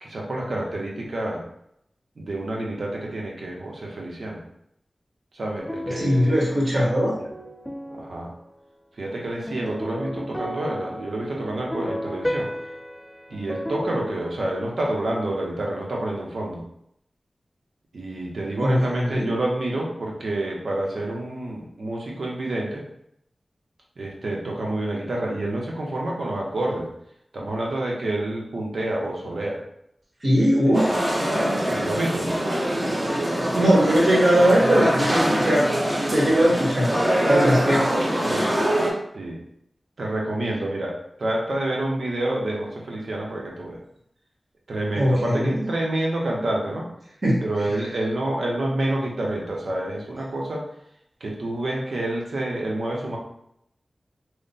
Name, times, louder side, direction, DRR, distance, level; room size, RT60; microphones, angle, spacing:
voice 1, 0.0-1.4 2.2-4.4 5.3-6.4 7.9-8.3 8.9-12.5 13.3-16.6 17.9-22.8 24.0-26.9 27.3-29.6 31.7-32.3 36.3-36.4 38.2-38.5 39.1-39.4 40.0-43.8 44.7-46.9 47.4-50.7 51.2-53.2, right 1 dB, 80° right, -2 dB, 0.8 m, -28 dB
sound 1, 5.6-8.7 9.5-15.1, equal, 5° left, 0.4 m, -34 dB
voice 2, 5.9-7.1 18.6-19.3 30.2-31.0 33.5-35.7 36.1-38.1 45.0-45.6 47.2-47.4, equal, 60° right, -5 dB, 1.4 m, -20 dB
sound 2, 30.7-38.9, right 1 dB, 25° right, 0.8 m, -23 dB
3.2 x 2.1 x 4.0 m, 0.74 s
wide cardioid pair, 55°, 0 cm